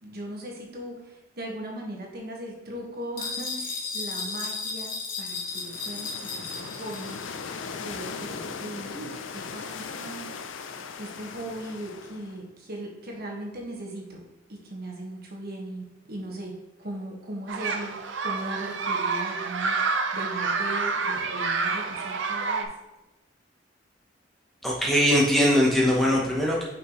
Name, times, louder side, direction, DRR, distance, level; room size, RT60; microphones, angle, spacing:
voice 1, 0.0-7.2 7.8-14.2 14.5-16.5 16.8-22.7, right 1 dB, 55° right, -1 dB, 1.5 m, -38 dB
sound 1, 3.2-7.3, left 4 dB, 50° left, 1.2 m, -34 dB
sound 2, 5.3-12.4, left 5 dB, 85° left, 0.5 m, -38 dB
sound 3, 17.5-22.6, right 4 dB, 75° right, 0.7 m, -28 dB
voice 2, 24.6-26.6, equal, ahead, -4 dB, 0.9 m, -21 dB
6.3 x 5.9 x 3.1 m, 1.0 s
head